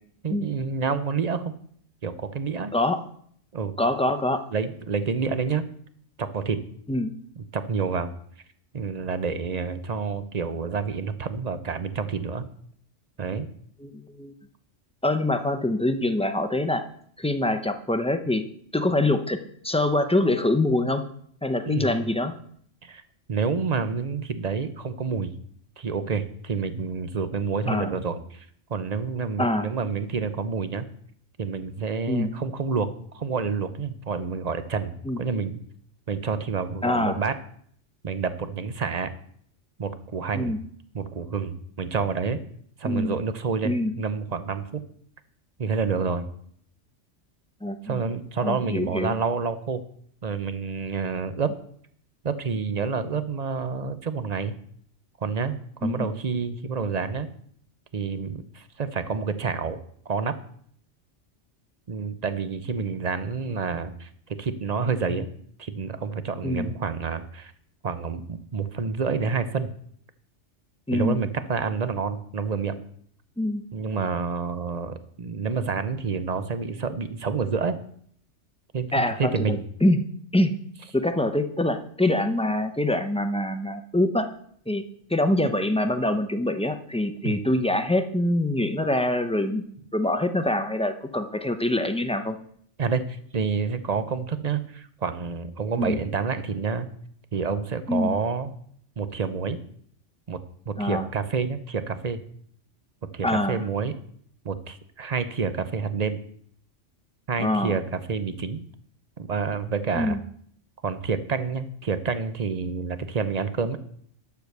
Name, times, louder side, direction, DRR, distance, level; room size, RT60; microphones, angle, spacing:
voice 1, 0.2-1.6 2.0-2.7 3.5-3.8 4.5-5.7 6.2-6.6 7.4-8.1 8.7-12.5 13.2-13.5 21.6-22.1 22.8-23.0 23.3-25.3 25.8-30.9 31.4-35.6 36.1-37.4 38.0-39.1 39.8-40.5 40.9-42.4 42.8-44.8 45.6-46.3 47.8-49.8 50.2-51.5 52.2-54.5 55.2-57.3 57.9-59.8 60.1-60.4 61.9-65.3 65.6-67.5 67.8-69.7 70.9-72.8 73.7-77.8 78.7-79.6 87.2-87.4 92.8-96.9 97.3-98.5 99.0-99.6 100.3-100.4 100.7-102.2 103.1-104.0 104.4-106.2 107.3-108.6 109.2-110.2 110.8-113.8, right 5 dB, 40° right, 11 dB, 0.7 m, -28 dB
voice 2, 2.7-3.0 3.8-4.4 6.9-7.1 13.8-14.3 15.0-16.8 17.2-18.4 18.7-19.4 19.6-21.0 21.4-22.3 27.7-27.9 29.4-29.7 32.1-32.3 35.0-35.2 36.8-37.1 40.3-40.6 42.8-43.1 43.6-43.9 47.6-48.0 48.4-49.2 55.8-56.1 66.4-66.7 70.9-71.2 73.4-73.6 78.9-80.0 80.3-80.5 80.9-84.3 84.7-84.8 85.1-89.6 89.9-92.4 95.8-96.0 97.9-98.1 100.8-101.1 103.2-103.6 107.4-107.8 109.9-110.2, left 1 dB, 10° left, 8 dB, 0.4 m, -24 dB
12.0 x 4.8 x 6.7 m, 0.62 s
omnidirectional pair, 1.3 m